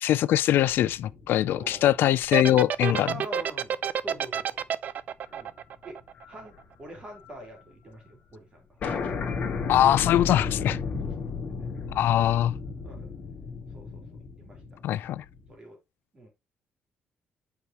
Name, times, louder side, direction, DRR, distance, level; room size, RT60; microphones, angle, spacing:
voice 1, 0.0-3.1 9.7-10.8 11.9-12.5 14.8-15.2, left 12 dB, 70° left, 0.4 m, -22 dB
sound 1, 0.6-3.2 3.7-3.8 5.3-5.6 5.9-7.3 7.6-7.7 7.9-8.0 8.3-8.4 8.8-15.5, left 5 dB, 40° left, 2.0 m, -34 dB
voice 2, 1.4-1.9 3.0-4.7 5.3-6.0 6.3-8.7 10.9-11.2 12.3-12.5 12.8-13.1 13.7-14.6 15.5-15.8 16.1-16.3, equal, 30° right, 3.2 m, -45 dB
sound 2, 2.2-6.6, right 8 dB, 50° right, 0.4 m, -29 dB
8.4 x 4.7 x 2.9 m
cardioid pair, 160°, 4 cm